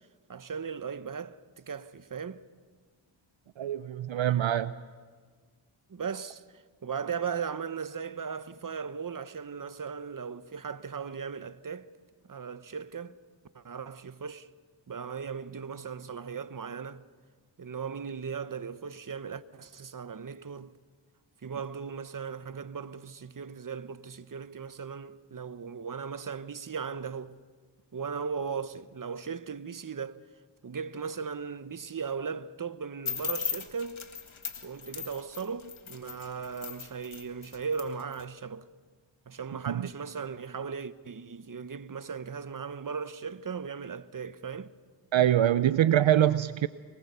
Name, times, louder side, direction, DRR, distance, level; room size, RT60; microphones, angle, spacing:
voice 1, 0.3-2.4 5.9-11.9 12.3-13.2 13.5-14.5 14.9-17.0 17.6-20.7 21.4-27.4 27.9-30.2 30.6-34.0 34.6-38.7 39.3-44.7, right 6 dB, 40° right, 1.0 m, -37 dB
voice 2, 3.6-4.7 39.7-39.8 45.1-46.7, right 11 dB, 70° right, 0.7 m, -24 dB
sound 1, 33.0-38.2, left 7 dB, 75° left, 2.1 m, -37 dB
24.0 x 20.5 x 6.9 m
cardioid pair, 45°, 48 cm